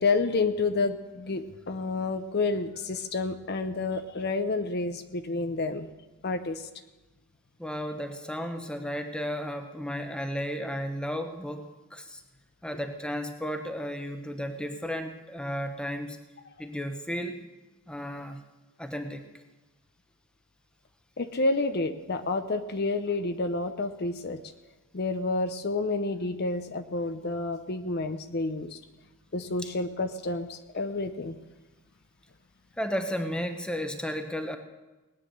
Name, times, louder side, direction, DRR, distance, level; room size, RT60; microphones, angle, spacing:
voice 1, 0.0-5.9 6.2-6.7 21.2-24.4 24.9-28.8 29.3-31.4, left 3 dB, 50° left, 9 dB, 0.7 m, -29 dB
voice 2, 7.6-12.2 12.6-16.2 16.6-17.4 17.9-18.4 18.8-19.3 30.8-30.9 32.8-34.6, equal, 5° left, 6 dB, 1.0 m, -34 dB
19.0 x 9.7 x 6.6 m, 1.1 s
head